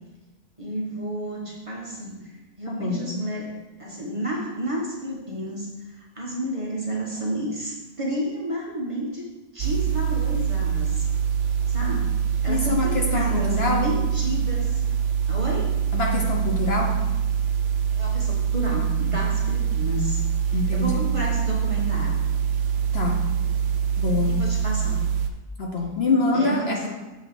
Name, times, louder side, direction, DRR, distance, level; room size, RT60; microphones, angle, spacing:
voice 1, 0.6-2.3 2.6-3.5 3.8-9.2 9.5-11.0 11.7-12.1 12.4-14.8 15.3-15.8 17.9-22.3 24.2-25.0 26.3-26.9, equal, 25° right, -4 dB, 1.3 m, -31 dB
voice 2, 2.7-3.0 12.5-13.8 15.9-16.9 20.5-20.9 22.9-23.2 24.0-24.3 25.6-26.9, left 3 dB, 55° left, 0 dB, 1.0 m, -25 dB
sound 1, 9.6-25.3, right 8 dB, 65° right, 0.9 m, -24 dB
7.0 x 3.8 x 6.0 m, 1.1 s
omnidirectional pair, 1.4 m